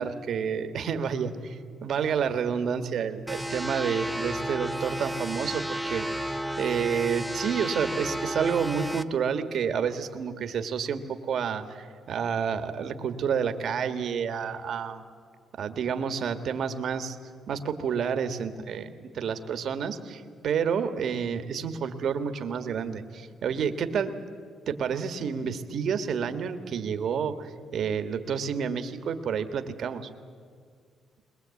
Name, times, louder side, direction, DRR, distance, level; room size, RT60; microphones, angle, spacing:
voice 1, 0.0-6.1 6.6-11.0 11.3-15.0 15.6-17.2 17.5-24.1 24.7-30.1, right 7 dB, 65° right, 8 dB, 1.6 m, -29 dB
sound 1, 3.3-9.0, right 1 dB, ahead, 0.9 m, -32 dB
22.0 x 21.0 x 8.5 m, 2.1 s
cardioid pair, 90°, 0 cm